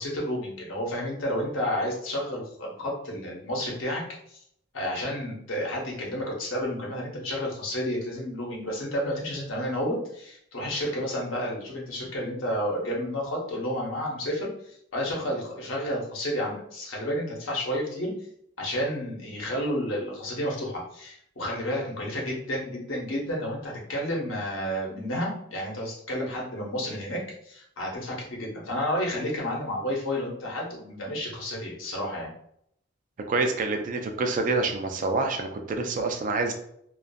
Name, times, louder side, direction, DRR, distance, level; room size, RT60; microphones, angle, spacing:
voice 1, 0.0-4.0 4.7-14.5 14.9-18.1 18.6-32.3, equal, 75° left, -2 dB, 0.8 m, -31 dB
voice 2, 33.3-36.5, right 3 dB, 40° right, 4 dB, 0.3 m, -27 dB
2.5 x 2.3 x 2.2 m, 0.70 s
head